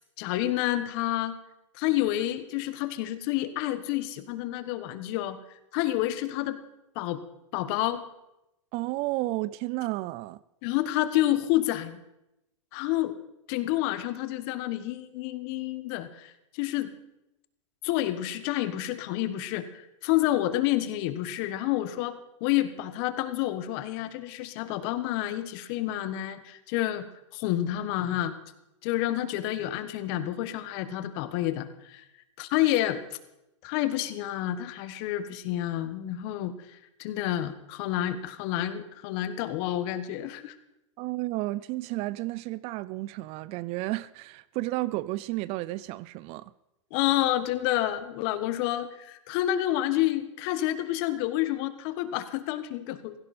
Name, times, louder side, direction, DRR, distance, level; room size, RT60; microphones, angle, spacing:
voice 1, 0.2-1.4 1.7-5.4 5.7-6.6 6.9-7.2 7.5-8.0 10.6-12.0 12.7-13.1 13.5-16.9 17.8-27.1 27.3-28.3 28.8-32.0 32.4-33.0 33.6-40.6 46.9-53.1, left 14 dB, 50° left, 1.4 m, -29 dB
voice 2, 8.7-10.4 41.0-46.5, right 19 dB, 40° right, 0.4 m, -32 dB
16.5 x 16.5 x 4.3 m
hypercardioid pair, 125°, 16 cm